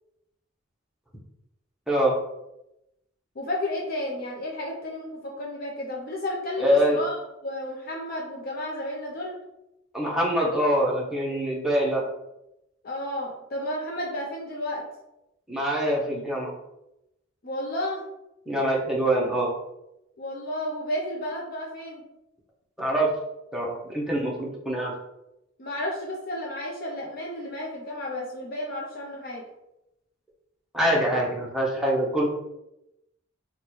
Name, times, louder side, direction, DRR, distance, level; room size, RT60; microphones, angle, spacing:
voice 1, 3.4-7.2 7.4-9.3 12.8-14.8 17.4-18.0 20.2-22.0 25.6-29.4, left 1 dB, 50° left, -2 dB, 0.5 m, -32 dB
voice 2, 6.6-7.0 9.9-12.0 15.5-16.5 18.5-19.5 22.8-23.1 23.5-24.9 30.7-32.3, equal, ahead, -4 dB, 0.7 m, -24 dB
3.0 x 2.2 x 4.2 m, 0.90 s
head